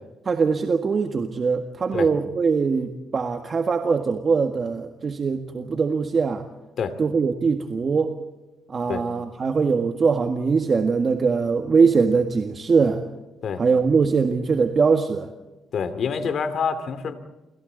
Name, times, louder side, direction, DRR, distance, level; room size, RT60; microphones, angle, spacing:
voice 1, 0.2-6.4 7.0-8.1 8.7-13.0 13.6-15.3, right 5 dB, 40° right, 5 dB, 1.7 m, -22 dB
voice 2, 15.7-17.1, left 6 dB, 60° left, 10 dB, 2.6 m, -26 dB
29.5 x 26.5 x 4.0 m, 1.1 s
cardioid pair, 90°, 0 cm